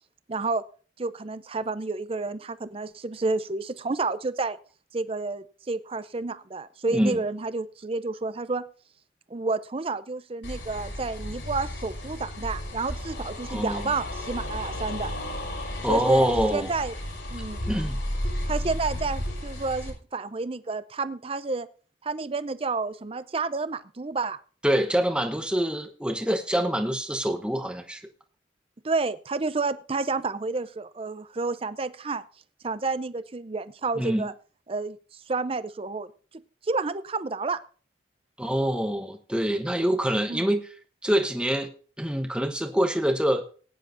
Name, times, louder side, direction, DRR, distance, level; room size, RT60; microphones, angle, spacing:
voice 1, 0.3-0.6 1.0-4.6 4.9-8.6 9.3-15.1 15.9-16.9 17.3-17.6 18.5-21.7 22.0-24.4 28.8-32.2 32.6-34.3 34.7-36.1 36.3-37.6 40.3-40.5, right 3 dB, 30° right, 14 dB, 0.5 m, -30 dB
sound 1, 10.4-19.9, left 1 dB, 80° left, 5.6 m, -33 dB
voice 2, 13.5-13.9 15.8-16.7 17.7-18.0 24.6-28.0 34.0-34.3 38.4-40.6 41.0-41.7 42.0-43.4, equal, 5° right, 5 dB, 0.9 m, -25 dB
19.5 x 9.9 x 2.6 m, 0.40 s
head